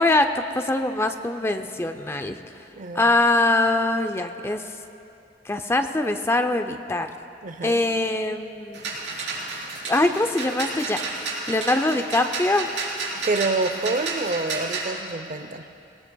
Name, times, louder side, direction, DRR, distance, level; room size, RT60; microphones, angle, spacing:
voice 1, 0.0-2.4 2.9-4.6 5.5-7.1 7.6-8.9 9.8-12.7, left 2 dB, 15° left, 7 dB, 0.5 m, -23 dB
voice 2, 7.4-7.8 13.1-15.7, right 3 dB, 45° right, 9 dB, 0.6 m, -27 dB
sound 1, 8.7-14.9, right 3 dB, 85° right, 3.6 m, -31 dB
21.0 x 19.0 x 2.3 m, 2.6 s
head